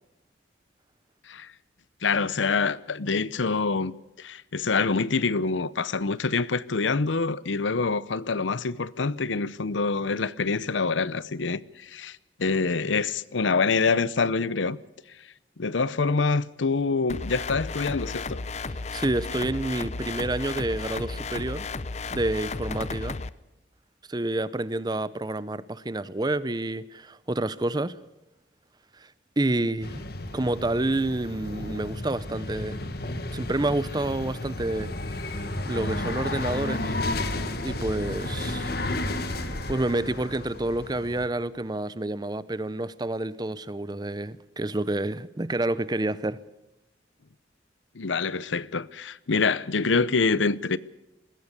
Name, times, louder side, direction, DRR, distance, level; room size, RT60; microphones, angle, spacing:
voice 1, 2.0-14.8 15.6-18.4 47.9-50.8, left 4 dB, 85° left, 0.7 m, -26 dB
sound 1, 17.1-23.3, left 3 dB, 35° left, 0.7 m, -34 dB
voice 2, 18.7-21.7 22.1-23.2 24.1-28.0 28.9-30.0 30.3-32.8 33.3-34.9 35.2-37.0 37.6-38.7 39.7-46.4, right 2 dB, 20° right, 0.6 m, -29 dB
sound 2, 29.8-41.3, left 2 dB, 55° left, 1.8 m, -32 dB
20.5 x 16.0 x 8.2 m
head